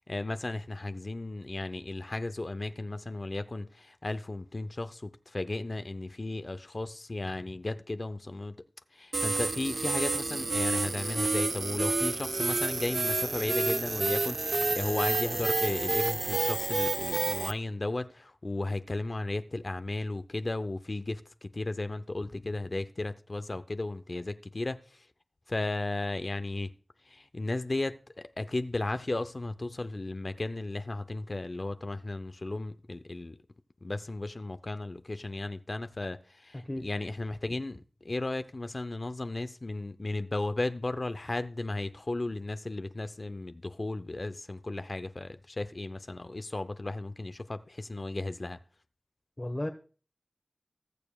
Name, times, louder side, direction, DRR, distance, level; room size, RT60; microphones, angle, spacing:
voice 1, 0.1-8.5 8.9-25.1 25.5-26.7 27.0-33.4 33.8-48.6, left 2 dB, 55° left, 0.6 m, -35 dB
sound 1, 9.1-17.5, right 3 dB, 75° right, 0.4 m, -29 dB
voice 2, 49.4-49.7, left 1 dB, 30° left, 1.2 m, -33 dB
19.5 x 6.9 x 2.3 m
wide cardioid pair, 40°, 0 cm